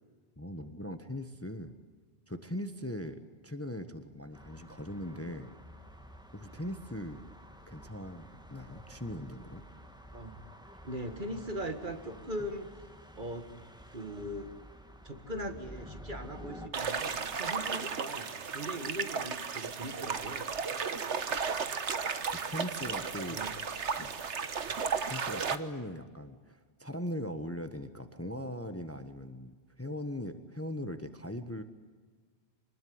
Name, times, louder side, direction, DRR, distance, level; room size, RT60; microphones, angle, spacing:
voice 1, 0.4-1.7 2.3-5.5 6.3-7.2 7.7-9.6 22.4-23.4 24.0-24.1 25.0-31.6, left 1 dB, 15° left, 9 dB, 1.2 m, -40 dB
sound 1, 4.3-16.7, equal, 5° right, 1.8 m, -51 dB
voice 2, 10.8-12.7 13.1-13.5 13.9-14.5 15.0-20.5 23.1-23.5 24.7-24.8, equal, 45° right, 7 dB, 2.1 m, -40 dB
sound 2, 16.7-25.6, right 6 dB, 90° right, 1.6 m, -34 dB
26.0 x 20.5 x 9.5 m, 1.5 s
omnidirectional pair, 1.1 m